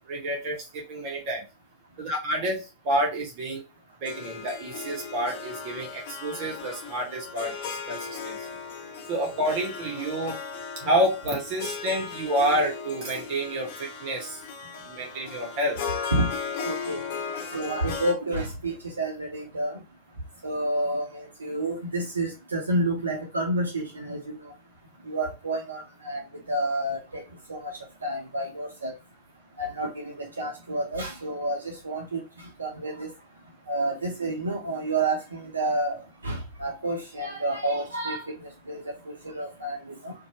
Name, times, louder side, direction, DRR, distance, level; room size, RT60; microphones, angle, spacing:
voice 1, 0.1-1.4 2.0-3.6 4.0-8.5 9.1-10.4 10.8-14.4 14.8-15.8, right 1 dB, 45° right, 0.8 m, -29 dB
Harp, 4.0-18.1, left 6 dB, 50° left, 0.7 m, -37 dB
voice 2, 16.6-17.0 17.5-19.8 20.4-24.5 25.1-26.2 26.5-27.2 27.5-28.9 29.6-33.1 33.7-40.1, right 1 dB, 75° right, 0.6 m, -30 dB
2.7 x 2.2 x 2.8 m
figure-of-eight pair, 90°, 0 cm